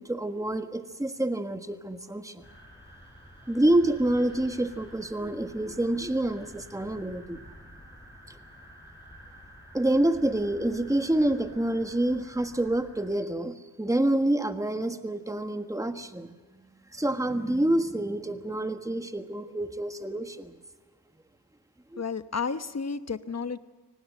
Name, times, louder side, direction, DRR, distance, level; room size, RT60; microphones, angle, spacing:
voice 1, 0.0-2.4 3.5-7.4 9.7-16.3 16.9-20.6 21.9-22.0, right 1 dB, 10° right, 8 dB, 1.5 m, -27 dB
sound 1, 2.4-13.1, equal, 10° left, 7.6 m, -50 dB
voice 2, 22.0-23.6, left 5 dB, 40° left, 12 dB, 1.0 m, -32 dB
24.5 x 19.0 x 7.8 m, 1.3 s
wide cardioid pair, 70°, 40 cm